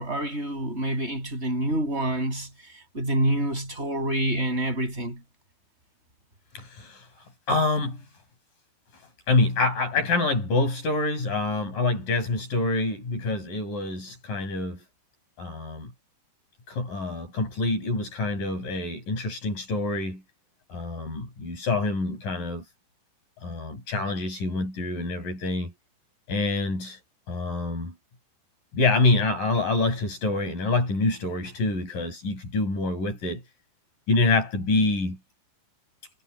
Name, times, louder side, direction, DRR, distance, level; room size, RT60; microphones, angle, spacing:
voice 1, 0.0-2.5 2.9-5.2, right 1 dB, 20° right, 6.9 m, -27 dB
voice 2, 6.6-7.1 7.5-8.0 9.3-14.8 15.4-15.9 16.7-20.2 20.7-22.6 23.4-25.7 26.3-27.0 27.3-27.9 28.7-33.4 34.1-35.2, left 3 dB, 90° left, 9.0 m, -26 dB
omnidirectional pair, 3.7 m